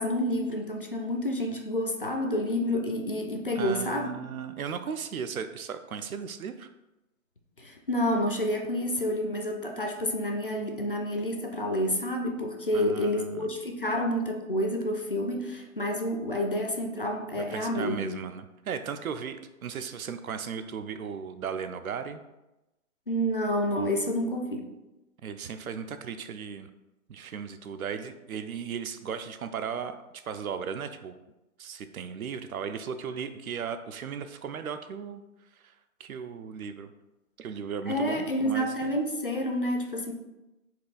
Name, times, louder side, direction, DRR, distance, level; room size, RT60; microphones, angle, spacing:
voice 1, 0.0-4.2 7.6-18.2 23.1-24.7 37.9-40.1, equal, 40° left, 2 dB, 0.4 m, -29 dB
voice 2, 3.6-6.7 12.7-13.5 17.3-22.2 25.2-26.7 27.1-31.1 31.6-35.2 36.0-36.9 37.4-38.9, right 7 dB, 75° right, 9 dB, 0.6 m, -36 dB
4.5 x 2.9 x 3.9 m, 0.99 s
hypercardioid pair, 170°, 42 cm